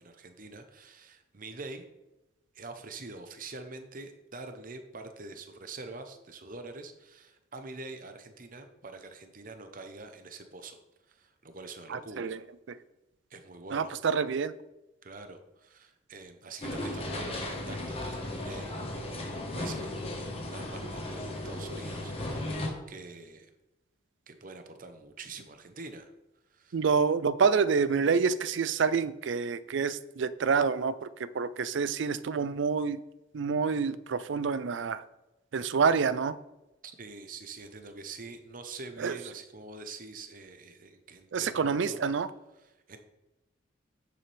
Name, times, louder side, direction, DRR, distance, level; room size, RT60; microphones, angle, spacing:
voice 1, 0.0-1.9 2.5-10.8 11.1-12.4 13.3-13.9 15.0-18.7 19.0-23.5 24.3-26.1 26.5-26.8 36.8-42.0 42.6-43.0, right 3 dB, 45° right, 7 dB, 0.8 m, -45 dB
voice 2, 11.9-12.4 12.7-12.8 13.7-14.5 26.7-33.0 33.3-35.0 35.5-36.3 39.0-39.2 41.3-42.3, right 5 dB, 70° right, 15 dB, 0.4 m, -27 dB
sound 1, 16.6-22.7, left 1 dB, 30° left, 1.3 m, -36 dB
9.2 x 6.9 x 3.4 m, 0.97 s
head